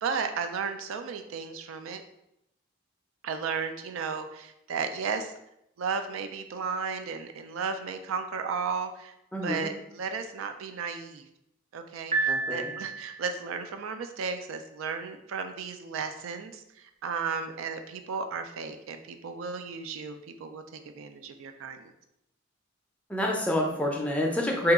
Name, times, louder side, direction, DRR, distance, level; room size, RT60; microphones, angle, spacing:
voice 1, 0.0-2.0 3.2-5.3 5.8-9.1 9.4-11.3 11.7-16.6 17.0-21.9, right 5 dB, 85° right, 8 dB, 0.3 m, -34 dB
voice 2, 9.3-9.7 12.3-12.7 23.1-24.7, left 1 dB, 5° left, -1 dB, 0.4 m, -27 dB
Piano, 12.1-13.4, right 3 dB, 35° right, 0.6 m, -30 dB
2.8 x 2.3 x 3.5 m, 0.81 s
head